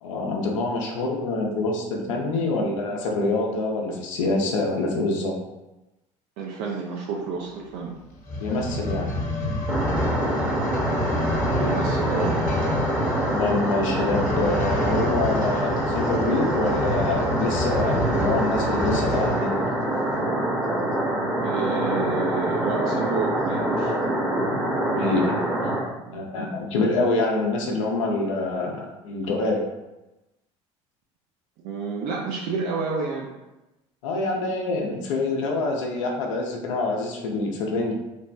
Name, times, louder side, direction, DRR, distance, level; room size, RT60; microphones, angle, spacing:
voice 1, 0.0-5.4 8.4-9.1 13.2-19.6 24.9-25.3 26.1-29.6 34.0-37.9, left 2 dB, 85° left, 0 dB, 0.5 m, -26 dB
voice 2, 6.4-7.9 11.6-12.4 21.4-23.9 26.0-26.2 31.6-33.3, right 4 dB, 65° right, -1 dB, 0.5 m, -29 dB
sound 1, 8.2-19.5 20.1-20.2, left 1 dB, 50° left, 0.8 m, -28 dB
sound 2, 9.7-25.8, right 1 dB, 10° right, 0.8 m, -25 dB
3.3 x 2.1 x 2.5 m, 1.0 s
hypercardioid pair, 70°, 16 cm